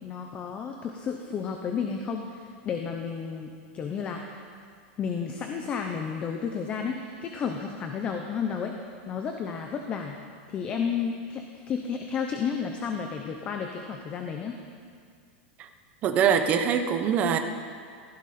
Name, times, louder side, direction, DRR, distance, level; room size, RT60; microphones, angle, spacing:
voice 1, 0.0-4.4 5.0-8.8 9.1-10.2 10.5-14.6, left 6 dB, 20° left, 4 dB, 0.8 m, -32 dB
voice 2, 16.0-17.4, right 7 dB, 20° right, 6 dB, 0.8 m, -23 dB
16.0 x 15.5 x 4.3 m, 2.1 s
supercardioid pair, 175°, 6 cm